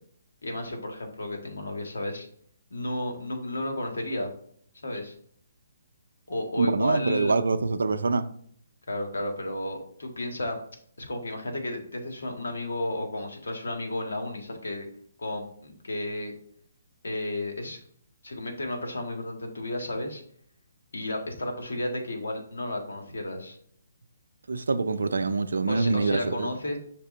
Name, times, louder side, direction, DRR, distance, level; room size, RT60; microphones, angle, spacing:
voice 1, 0.4-2.3 2.7-4.3 4.8-5.1 6.3-7.3 8.9-10.6 11.0-14.9 15.2-16.3 17.0-17.8 18.2-20.2 20.9-23.6 25.7-26.8, left 1 dB, 80° left, 1.7 m, -33 dB
voice 2, 6.6-8.3 24.5-26.5, right 3 dB, 80° right, 0.4 m, -25 dB
5.9 x 3.6 x 4.4 m
hypercardioid pair, 150°, 0 cm